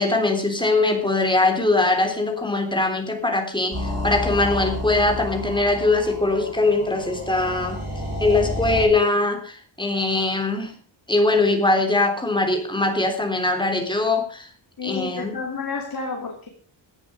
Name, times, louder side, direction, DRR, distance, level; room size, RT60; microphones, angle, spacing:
voice 1, 0.0-7.8 8.2-10.7 11.1-14.5 14.8-15.3, left 2 dB, 10° left, 3 dB, 3.6 m, -21 dB
sound 1, 3.7-8.9, left 1 dB, 30° right, 6.6 m, -30 dB
voice 2, 14.8-16.5, left 4 dB, 45° left, 2 dB, 2.6 m, -30 dB
16.5 x 11.5 x 5.2 m, 0.41 s
wide cardioid pair, 170°, 47 cm